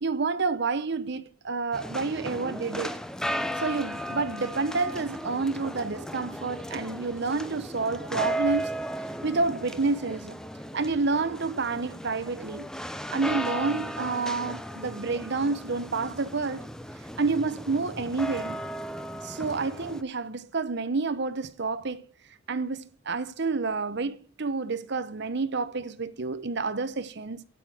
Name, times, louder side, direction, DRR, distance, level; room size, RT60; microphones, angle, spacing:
voice 1, 0.0-3.0 3.6-8.7 9.2-10.4 10.7-12.7 13.1-16.7 17.2-18.6 19.2-22.1 22.5-27.4, right 4 dB, 60° right, 0.9 m, -29 dB
sound 1, 1.7-20.0, equal, 5° left, 0.7 m, -36 dB
9.3 x 8.9 x 5.9 m
head